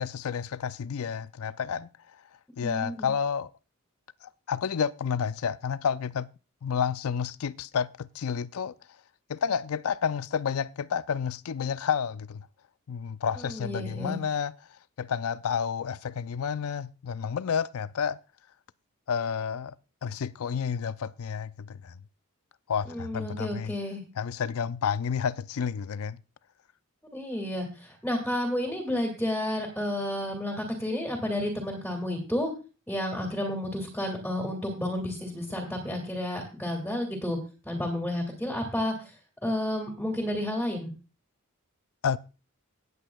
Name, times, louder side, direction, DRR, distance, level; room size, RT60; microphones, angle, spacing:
voice 1, 0.0-1.9 2.6-3.5 4.2-6.3 6.6-8.7 9.3-12.5 12.9-14.5 15.0-18.2 19.1-19.8 20.0-21.9 22.7-23.7 24.2-26.2 42.0-42.2, left 7 dB, 70° left, 0.4 m, -30 dB
voice 2, 2.6-3.1 13.4-14.2 22.9-24.0 27.1-32.5 32.9-37.4 37.6-39.1 39.4-40.9, left 1 dB, 5° left, 2.0 m, -31 dB
18.5 x 8.3 x 2.3 m
head